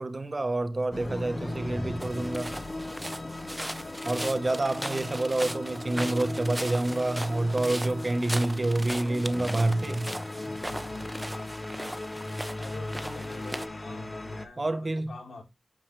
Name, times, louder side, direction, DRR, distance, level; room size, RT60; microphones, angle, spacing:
voice 1, 0.0-2.6 4.0-10.1 14.6-15.1, right 2 dB, 40° right, 1.2 m, -28 dB
sound 1, 0.9-14.4, left 2 dB, 35° left, 1.3 m, -38 dB
sound 2, 2.0-13.7, equal, 10° right, 0.9 m, -38 dB
voice 2, 4.1-4.4 10.6-11.0 12.6-15.4, left 3 dB, 80° left, 4.2 m, -46 dB
9.1 x 5.8 x 3.3 m
wide cardioid pair, 60°, 0 cm